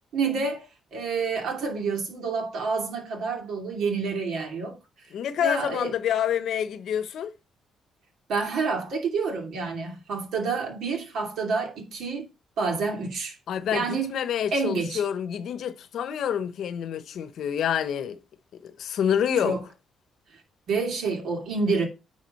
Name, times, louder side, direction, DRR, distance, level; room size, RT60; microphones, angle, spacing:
voice 1, 0.1-4.8 5.4-5.9 8.3-12.3 12.6-13.3 13.7-14.1 14.5-15.0 19.4-19.6 20.7-21.9, right 4 dB, 75° right, 2.5 m, -28 dB
voice 2, 5.1-7.3 13.5-18.2 18.5-19.6, left 9 dB, 70° left, 0.8 m, -27 dB
9.6 x 3.7 x 5.3 m
cardioid pair, 90°, 0 cm